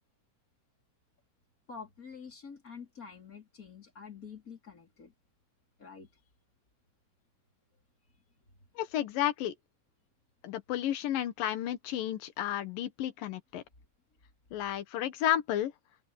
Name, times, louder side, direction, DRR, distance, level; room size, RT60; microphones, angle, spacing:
voice 1, 1.7-5.1 5.8-6.1, left 6 dB, 25° left, 4.4 m, -47 dB
voice 2, 8.8-9.5 10.4-13.6 14.5-15.7, left 12 dB, 85° left, 3.1 m, -32 dB
open air
omnidirectional pair, 3.8 m